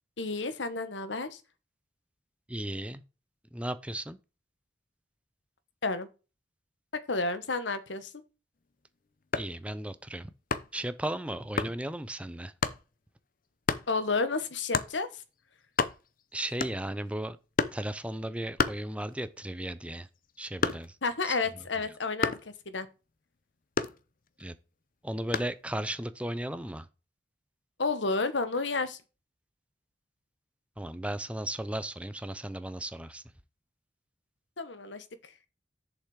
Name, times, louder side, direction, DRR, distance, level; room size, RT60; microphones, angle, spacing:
voice 1, 0.2-1.4 5.8-6.1 6.9-8.1 13.9-15.2 21.0-22.9 27.8-29.0 34.6-35.3, left 3 dB, 90° left, 1.2 m, -31 dB
voice 2, 2.5-3.0 3.5-4.2 9.4-10.3 10.7-12.5 16.3-17.4 17.7-20.1 20.4-21.0 21.3-21.4 24.4-24.5 25.0-26.9 30.8-33.2, right 1 dB, 5° right, 0.6 m, -35 dB
sound 1, 9.2-9.6 10.5-10.8 11.6-11.8 12.6-12.8 13.7-13.9 14.7-15.0 15.4-15.5 15.7-16.2 16.6-17.0 17.6-17.9 18.6-19.3 19.7-21.1 22.2-22.5 23.8-24.4 25.3-25.6, left 5 dB, 50° left, 0.7 m, -31 dB
7.1 x 5.7 x 4.7 m
head